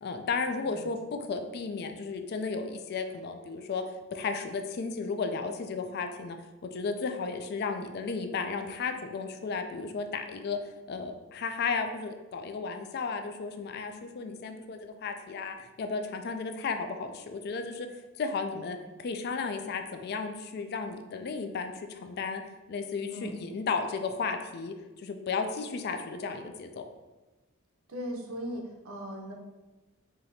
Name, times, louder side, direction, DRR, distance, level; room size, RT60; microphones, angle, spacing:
voice 1, 0.0-3.8 4.1-6.4 6.7-10.6 10.9-17.9 18.2-22.4 22.7-26.8, left 4 dB, 50° left, 7 dB, 0.3 m, -34 dB
voice 2, 23.1-23.4 27.9-29.3, equal, 75° right, 1 dB, 0.7 m, -38 dB
4.9 x 2.8 x 2.7 m, 1.1 s
head